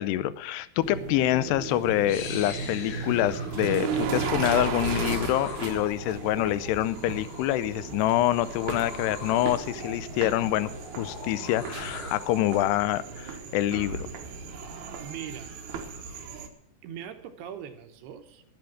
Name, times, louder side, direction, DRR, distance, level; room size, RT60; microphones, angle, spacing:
voice 1, 0.0-10.7 11.0-14.1, left 14 dB, 90° left, 16 dB, 2.8 m, -26 dB
sound 1, 0.8-16.5, right 5 dB, 60° right, 2.2 m, -35 dB
sound 2, 1.6-12.7, left 4 dB, 55° left, 2.6 m, -43 dB
voice 2, 15.0-15.6 16.8-18.4, right 9 dB, 80° right, 8 dB, 3.0 m, -41 dB
11.5 x 10.5 x 7.5 m, 0.71 s
omnidirectional pair, 4.7 m